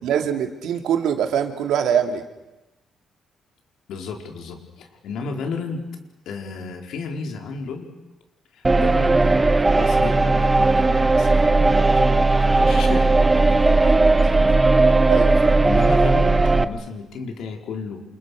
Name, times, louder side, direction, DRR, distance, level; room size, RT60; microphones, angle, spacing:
voice 1, 0.0-2.2 15.1-15.6, right 8 dB, 85° right, 6 dB, 2.8 m, -23 dB
voice 2, 3.9-5.8 6.2-7.9 8.5-14.6 15.0-15.1 15.6-18.0, left 4 dB, 80° left, 3 dB, 4.6 m, -33 dB
sound 1, 8.6-16.6, right 3 dB, 15° right, 1.0 m, -17 dB
29.5 x 28.0 x 6.5 m, 0.99 s
cardioid pair, 150°, 0 cm